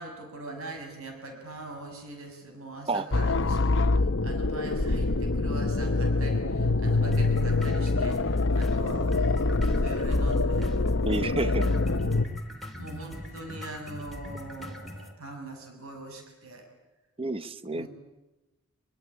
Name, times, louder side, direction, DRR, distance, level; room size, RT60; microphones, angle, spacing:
voice 1, 0.0-3.6 4.2-10.8 11.4-11.7 12.8-16.7 17.7-17.9, right 2 dB, 65° right, 4 dB, 6.4 m, -42 dB
sound 1, 3.1-12.3, left 3 dB, 55° left, 1.1 m, -25 dB
sound 2, 7.1-15.1, left 1 dB, ahead, 3.2 m, -41 dB
voice 2, 11.1-11.7 17.2-17.9, right 2 dB, 25° right, 14 dB, 1.0 m, -29 dB
25.0 x 24.0 x 9.8 m, 1.0 s
head